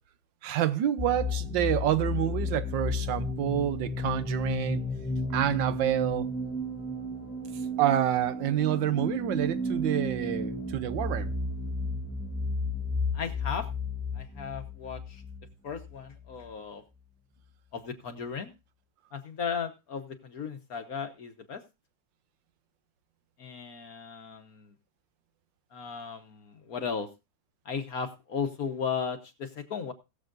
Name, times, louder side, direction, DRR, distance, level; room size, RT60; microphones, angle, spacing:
voice 1, 0.4-4.8 5.3-6.3 7.8-11.3, right 11 dB, 75° right, 1.5 m, -28 dB
sound 1, 1.0-16.5, left 2 dB, 10° left, 1.1 m, -33 dB
voice 2, 13.1-13.7 14.1-15.2 15.6-16.8 17.7-18.5 19.1-21.6 23.4-24.7 25.7-27.1 27.6-29.9, left 6 dB, 55° left, 1.4 m, -36 dB
20.5 x 7.4 x 2.6 m
omnidirectional pair, 2.1 m